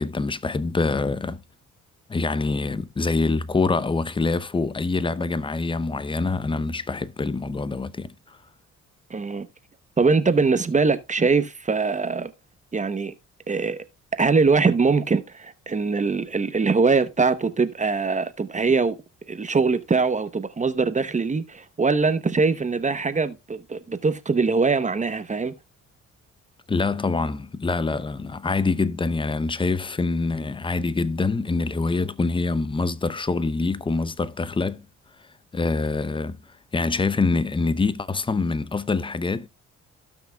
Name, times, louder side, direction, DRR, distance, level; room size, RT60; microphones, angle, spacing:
voice 1, 0.0-1.4 2.1-8.4 26.7-34.8 35.5-36.4 36.7-39.5, left 3 dB, 15° left, 0.6 m, -25 dB
voice 2, 9.1-9.5 10.0-12.3 12.7-13.1 13.5-13.8 14.1-19.0 19.3-25.5, right 4 dB, 25° right, 0.8 m, -22 dB
17.0 x 5.9 x 2.2 m
cardioid pair, 90°, 30 cm